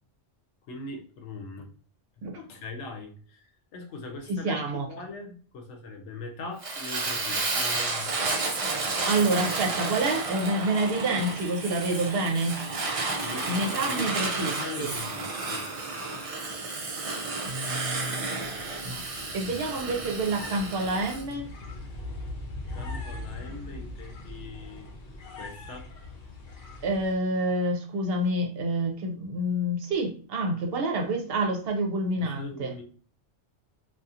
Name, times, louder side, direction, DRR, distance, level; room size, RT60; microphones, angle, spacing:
voice 1, 0.7-1.7 2.3-3.4 3.7-4.6 4.9-8.2 13.1-15.6 19.4-19.6 22.7-24.9 25.4-25.9 32.2-32.8, left 3 dB, 80° left, 4 dB, 0.9 m, -41 dB
voice 2, 4.3-4.9 9.0-12.6 13.5-14.5 14.8-14.9 17.4-18.6 18.8-19.0 19.3-21.5 26.8-32.8, right 2 dB, 60° right, 2 dB, 0.8 m, -28 dB
Fire, 6.6-21.2, right 3 dB, 45° right, 0.4 m, -32 dB
sound 1, 18.4-27.1, left 2 dB, 50° left, 0.7 m, -41 dB
2.7 x 2.3 x 2.4 m, 0.42 s
omnidirectional pair, 1.2 m